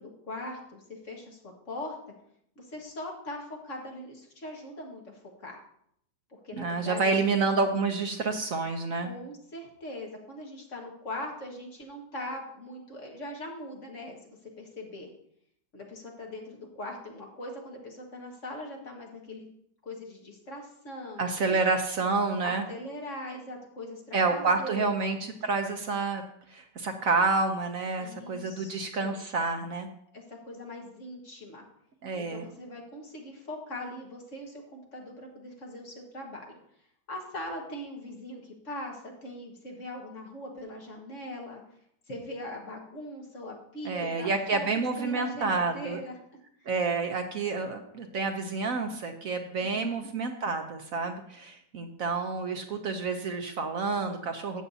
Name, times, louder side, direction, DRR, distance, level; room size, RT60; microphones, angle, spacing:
voice 1, 0.0-2.0 2.6-5.6 6.3-7.3 9.0-15.1 15.7-19.5 19.8-21.6 22.4-24.9 28.0-29.2 30.1-31.7 32.1-36.5 37.1-41.6 42.1-46.2 46.6-46.7 49.6-50.1, left 1 dB, 50° left, 0 dB, 1.8 m, -41 dB
voice 2, 6.6-9.1 21.2-22.6 24.1-26.2 26.5-29.9 32.0-32.5 43.8-46.0 46.7-54.6, right 4 dB, 60° right, 6 dB, 1.0 m, -29 dB
13.0 x 8.1 x 2.7 m, 0.70 s
omnidirectional pair, 1.8 m